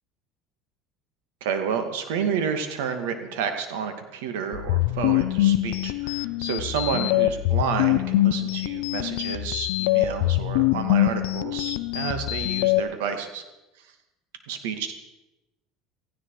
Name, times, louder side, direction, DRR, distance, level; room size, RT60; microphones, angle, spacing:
voice 1, 1.4-13.4 14.5-14.9, right 7 dB, 90° right, 7 dB, 2.4 m, -30 dB
sound 1, 4.5-12.8, left 16 dB, 80° left, 0.7 m, -24 dB
17.5 x 15.0 x 5.0 m, 0.98 s
cardioid pair, 135°, 0 cm